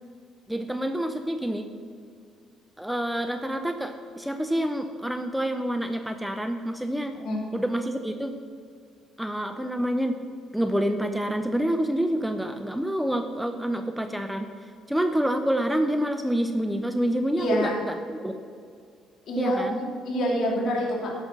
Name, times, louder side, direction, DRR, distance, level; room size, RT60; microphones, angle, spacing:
voice 1, 0.5-1.7 2.8-7.2 7.5-8.4 9.2-10.2 10.5-14.5 14.9-18.4 19.4-19.8, equal, 5° right, 7 dB, 0.7 m, -27 dB
voice 2, 7.1-7.4 17.4-17.9 19.3-19.6 20.0-21.1, equal, 55° left, -2 dB, 2.7 m, -26 dB
12.0 x 5.6 x 6.1 m, 2.2 s
hypercardioid pair, 55°, 0 cm